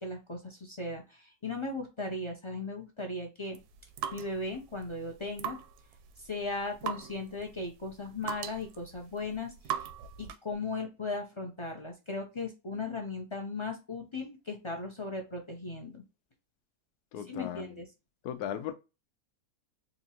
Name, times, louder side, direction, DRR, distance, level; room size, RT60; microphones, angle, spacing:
voice 1, 0.0-3.6 4.1-5.6 6.2-9.9 10.2-16.0 17.3-17.9, left 3 dB, 40° left, 0.4 m, -37 dB
sound 1, 3.5-10.5, right 9 dB, 80° right, 1.1 m, -41 dB
voice 2, 17.1-17.8 18.2-18.7, left 10 dB, 80° left, 1.2 m, -37 dB
4.2 x 2.6 x 2.8 m
omnidirectional pair, 1.7 m